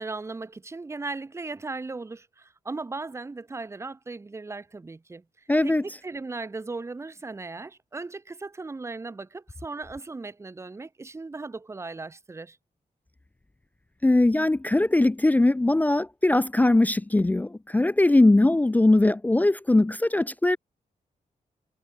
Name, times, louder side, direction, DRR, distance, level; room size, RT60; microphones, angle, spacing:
voice 1, 0.0-5.2 5.6-12.6, right 3 dB, 20° right, 0.7 m, -37 dB
voice 2, 5.5-5.8 14.0-20.6, left 2 dB, 10° left, 0.4 m, -20 dB
wide cardioid pair, 125°, 15 cm